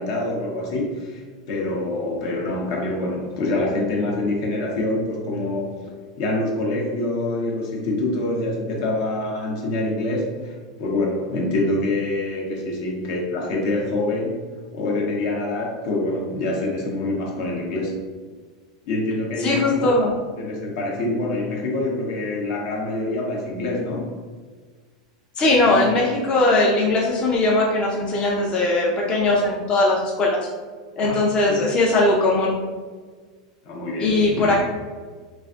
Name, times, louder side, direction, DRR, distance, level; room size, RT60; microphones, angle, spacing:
voice 1, 0.0-14.4 14.7-18.0 18.8-19.8 20.4-24.1 25.6-25.8 31.0-31.2 31.5-31.6 33.6-34.6, left 2 dB, 60° left, -1 dB, 0.7 m, -26 dB
voice 2, 19.4-20.1 25.4-30.5 31.0-32.6 34.0-34.6, left 2 dB, 30° left, -3 dB, 0.5 m, -19 dB
3.1 x 2.5 x 2.4 m, 1.5 s
supercardioid pair, 120°, 3 cm